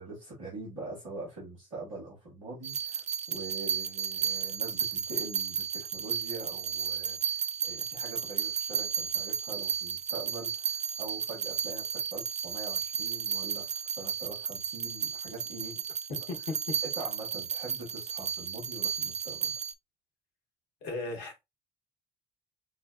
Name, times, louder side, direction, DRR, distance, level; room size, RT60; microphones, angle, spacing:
voice 1, 0.0-15.8 16.8-19.5, right 2 dB, 90° right, 2.1 m, -43 dB
sound 1, 2.6-19.7, right 8 dB, 45° right, 0.5 m, -33 dB
voice 2, 20.8-21.4, left 3 dB, 75° left, 1.2 m, -36 dB
6.0 x 2.3 x 2.4 m
hypercardioid pair, 50°, 17 cm